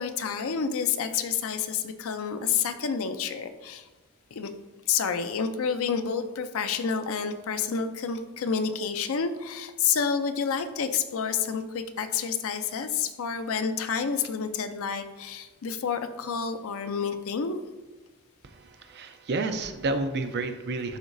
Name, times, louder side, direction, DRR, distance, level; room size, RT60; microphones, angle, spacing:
voice 1, 0.0-3.9 4.3-4.5 4.9-17.6, left 6 dB, 65° left, 9 dB, 0.5 m, -29 dB
voice 2, 18.4-21.0, right 3 dB, 50° right, 8 dB, 0.5 m, -30 dB
11.0 x 3.9 x 2.6 m, 1.2 s
head